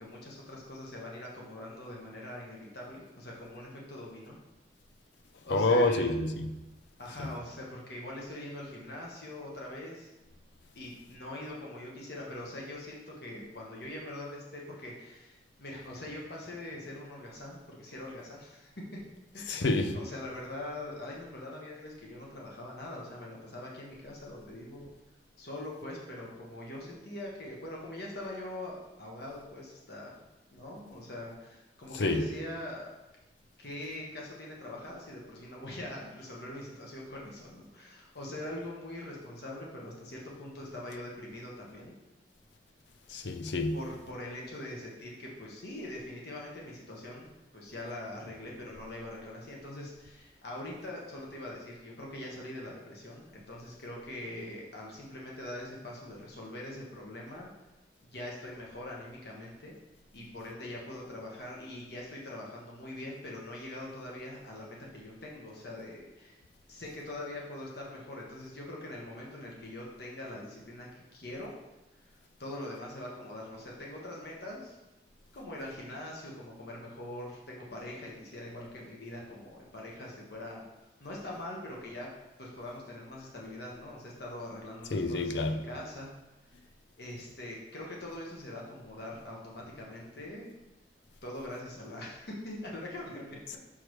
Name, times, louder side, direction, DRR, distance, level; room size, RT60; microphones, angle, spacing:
voice 1, 0.0-4.4 5.4-6.1 7.0-10.1 10.7-19.0 19.3-19.6 19.9-24.9 25.4-30.2 30.5-32.9 33.6-41.9 43.7-57.5 58.0-59.8 60.1-66.4 66.7-71.5 71.9-72.0 72.4-74.8 75.3-80.6 81.0-82.1 82.4-86.1 86.5-86.6 87.0-90.5 91.2-93.6, left 1 dB, 60° left, 1.3 m, -43 dB
voice 2, 5.5-6.6 7.2-7.3 19.5-20.0 31.9-32.3 43.1-43.8 84.9-85.7, left 2 dB, 75° left, 0.5 m, -28 dB
6.4 x 6.3 x 3.2 m
head